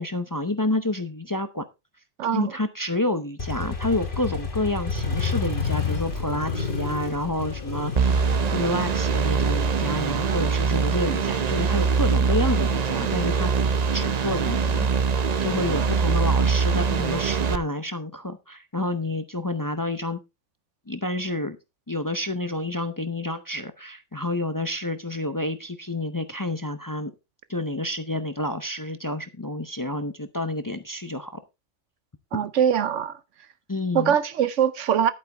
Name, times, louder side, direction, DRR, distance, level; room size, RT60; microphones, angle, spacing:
voice 1, 0.0-1.6 2.3-8.2 8.5-13.5 13.9-14.9 15.4-20.2 20.9-21.6 21.9-27.1 27.5-31.4 32.3-32.4 33.7-34.1, left 1 dB, 20° left, 0.6 m, -29 dB
voice 2, 2.2-2.5 15.7-15.9 32.3-33.1 33.9-35.1, right 8 dB, 80° right, 1.1 m, -22 dB
Motorcycle, 3.4-11.0, left 4 dB, 45° left, 2.0 m, -30 dB
sound 1, 8.0-17.6, right 5 dB, 40° right, 0.6 m, -23 dB
11.0 x 9.0 x 3.4 m
omnidirectional pair, 1.2 m